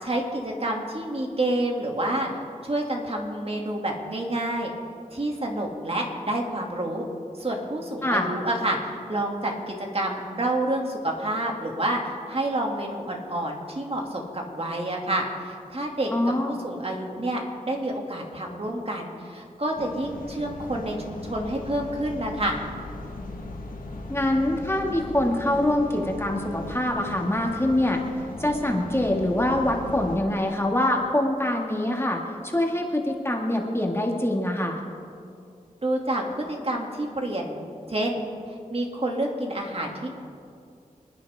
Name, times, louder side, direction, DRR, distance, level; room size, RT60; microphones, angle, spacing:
voice 1, 0.0-2.3 2.6-4.7 5.1-7.1 7.4-22.6 35.8-37.6 37.9-38.2 38.5-40.1, right 1 dB, 45° right, 0 dB, 2.6 m, -28 dB
voice 2, 16.1-16.6 24.1-28.0 28.4-34.8, left 1 dB, 15° left, 1 dB, 2.2 m, -24 dB
sound 1, 19.8-30.2, left 2 dB, 80° left, 1.7 m, -38 dB
28.0 x 10.5 x 3.7 m, 2.4 s
cardioid pair, 50°, 15 cm